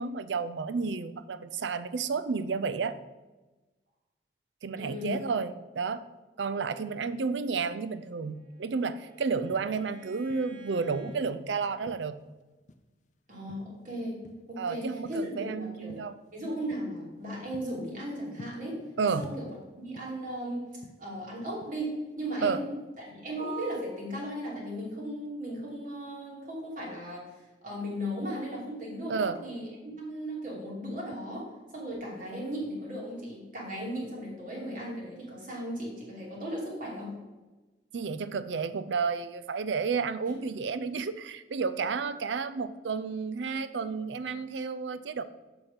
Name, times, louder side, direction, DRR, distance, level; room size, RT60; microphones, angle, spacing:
voice 1, 0.0-3.0 4.6-6.1 6.4-12.2 14.6-16.2 19.0-19.3 22.4-22.6 29.1-29.4 37.9-45.2, right 5 dB, 85° right, 14 dB, 0.5 m, -31 dB
voice 2, 4.8-5.2 13.3-14.2 14.5-16.0 16.3-19.5 19.8-20.7 21.0-27.2 27.6-31.4 31.7-37.2, equal, 50° right, -4 dB, 2.9 m, -36 dB
Bowed string instrument, 8.0-11.2, right 1 dB, 25° right, 1.2 m, -53 dB
sound 1, 9.3-10.6 11.0-12.3 12.7-13.1 13.5-14.6 14.9-15.4 15.9-16.2 16.7-16.9 17.3-18.9 19.2-20.4 20.7-22.1 22.5-22.8, left 2 dB, 45° left, 0.5 m, -50 dB
7.0 x 6.0 x 5.2 m, 1.2 s
head